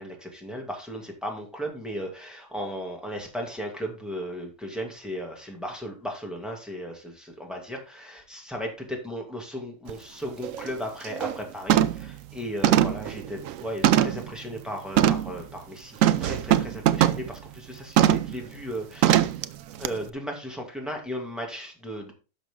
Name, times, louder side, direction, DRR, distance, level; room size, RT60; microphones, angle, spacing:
voice 1, 0.0-19.3 19.8-22.1, equal, ahead, 0 dB, 2.2 m, -36 dB
sound 1, 9.9-10.0 10.4-10.7 11.0-11.4 11.7-12.1 12.6-14.3 15.0-15.3 16.0-17.3 18.0-18.3 19.0-19.4 19.8-19.9, right 11 dB, 70° right, 0.9 m, -21 dB
11.0 x 6.1 x 3.7 m, 0.33 s
omnidirectional pair, 1.7 m